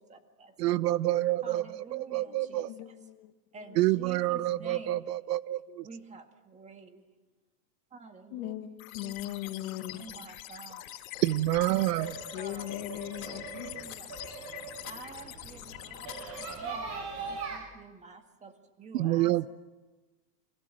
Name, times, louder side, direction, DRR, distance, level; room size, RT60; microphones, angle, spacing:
voice 1, 0.0-0.6 1.4-3.0 3.5-5.1 5.8-7.0 7.9-8.7 9.0-9.2 9.4-9.6 9.9-10.9 11.9-12.8 13.2-14.1 14.5-19.5, right 4 dB, 15° right, 6 dB, 2.0 m, -49 dB
voice 2, 0.6-2.7 3.8-5.9 11.2-12.1 18.9-19.5, right 16 dB, 70° right, 18 dB, 0.9 m, -28 dB
voice 3, 2.3-3.3 8.3-10.1 12.3-13.7, left 15 dB, 40° left, 8 dB, 1.7 m, -39 dB
sound 1, 8.8-16.6, left 15 dB, 55° left, 3.6 m, -44 dB
sound 2, 11.1-17.6, right 4 dB, 30° right, 7.7 m, -42 dB
30.0 x 24.5 x 7.6 m, 1.2 s
supercardioid pair, 160°, 49 cm